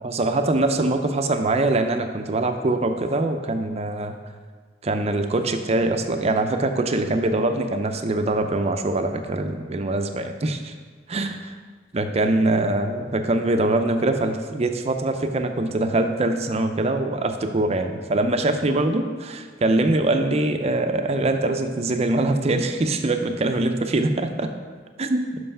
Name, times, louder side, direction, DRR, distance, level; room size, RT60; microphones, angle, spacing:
voice 1, 0.0-4.2 4.8-10.7 11.1-11.5 11.9-24.5 25.0-25.3, right 2 dB, 35° right, 7 dB, 0.5 m, -23 dB
5.5 x 5.5 x 5.5 m, 1.5 s
head